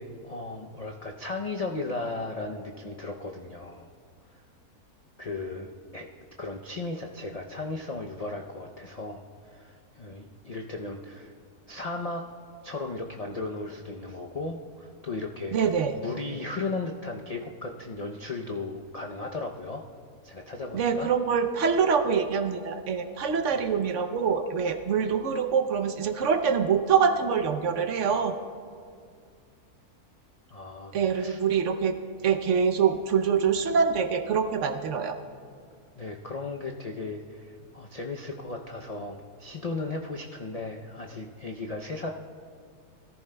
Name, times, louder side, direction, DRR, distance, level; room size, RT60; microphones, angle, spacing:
voice 1, 0.0-3.9 5.2-6.1 6.4-9.2 9.5-11.3 11.7-12.2 12.6-19.8 20.2-21.1 23.5-23.7 30.5-31.4 36.0-42.1, left 3 dB, 70° left, 1 dB, 0.3 m, -36 dB
voice 2, 15.5-15.9 20.7-28.3 30.9-32.0 32.2-35.2, right 6 dB, 60° right, 8 dB, 0.9 m, -25 dB
21.0 x 14.0 x 2.2 m, 2.2 s
omnidirectional pair, 1.6 m